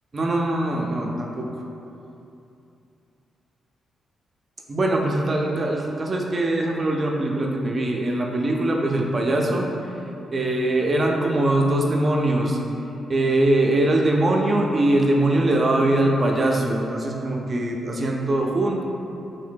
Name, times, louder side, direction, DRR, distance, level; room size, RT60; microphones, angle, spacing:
voice 1, 0.1-1.5 4.7-9.7 10.3-12.6 13.1-18.8, right 1 dB, 45° right, 0 dB, 0.4 m, -22 dB
2.7 x 2.1 x 3.3 m, 2.8 s
supercardioid pair, 45°, 0 cm